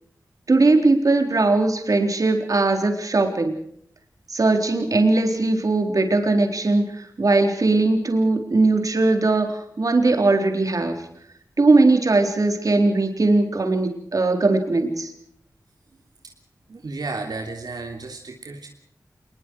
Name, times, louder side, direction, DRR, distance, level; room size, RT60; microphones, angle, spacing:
voice 1, 0.5-3.5 4.3-6.8 7.2-11.0 11.6-15.1, right 2 dB, 60° right, 4 dB, 4.1 m, -19 dB
voice 2, 16.7-18.7, right 3 dB, 80° right, 1 dB, 3.2 m, -33 dB
27.5 x 21.5 x 4.8 m, 0.66 s
wide cardioid pair, 85°, 7 cm